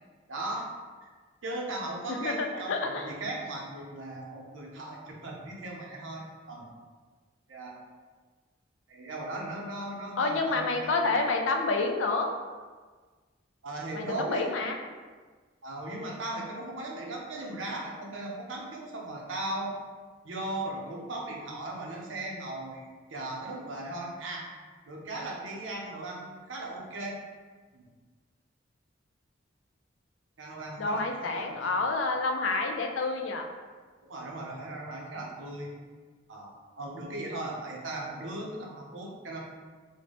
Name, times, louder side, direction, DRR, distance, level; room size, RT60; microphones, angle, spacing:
voice 1, 0.3-0.7 1.0-1.1 1.4-6.7 7.5-7.7 8.9-10.9 13.6-14.5 15.6-19.7 20.2-24.5 24.9-27.2 27.7-27.9 30.4-31.8 34.0-35.7 36.3-36.5 36.8-39.4, right 2 dB, 80° right, -1 dB, 0.7 m, -37 dB
voice 2, 2.1-3.1 10.2-12.3 13.9-14.8 30.8-33.5, left 3 dB, 80° left, 3 dB, 0.4 m, -28 dB
3.8 x 2.1 x 3.4 m, 1.4 s
head